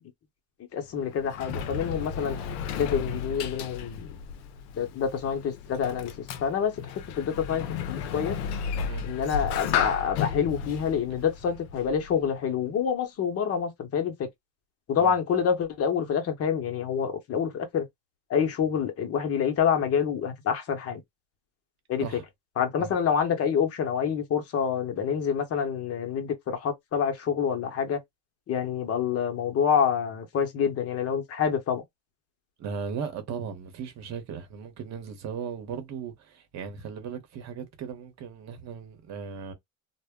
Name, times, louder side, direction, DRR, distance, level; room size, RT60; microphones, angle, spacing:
voice 1, 0.7-2.4 2.8-4.1 4.7-8.4 9.0-14.3 14.9-17.9 18.3-21.0 21.9-22.1 22.6-28.0 28.5-31.8, left 7 dB, 35° left, 0.8 m, -27 dB
Sliding door, 0.8-12.3, left 7 dB, 80° left, 0.6 m, -34 dB
voice 2, 32.6-39.5, right 6 dB, 40° right, 1.0 m, -37 dB
2.2 x 2.1 x 3.5 m
supercardioid pair, 125°, 41 cm